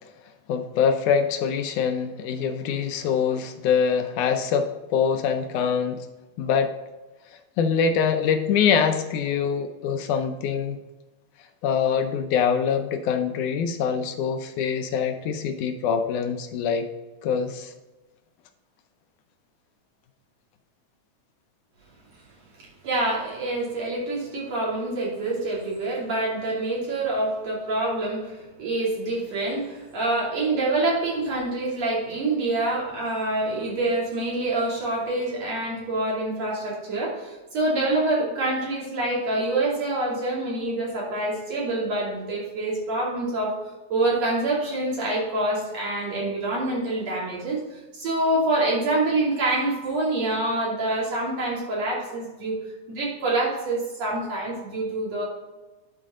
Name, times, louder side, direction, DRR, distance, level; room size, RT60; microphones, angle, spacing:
voice 1, 0.5-6.1 6.4-6.7 7.6-10.8 11.6-16.9 17.2-17.7, left 6 dB, 80° left, 6 dB, 2.1 m, -24 dB
voice 2, 22.6-43.6 43.9-52.6 52.9-55.3, right 2 dB, 55° right, -5 dB, 3.8 m, -26 dB
10.5 x 5.1 x 3.7 m, 1.1 s
omnidirectional pair, 3.6 m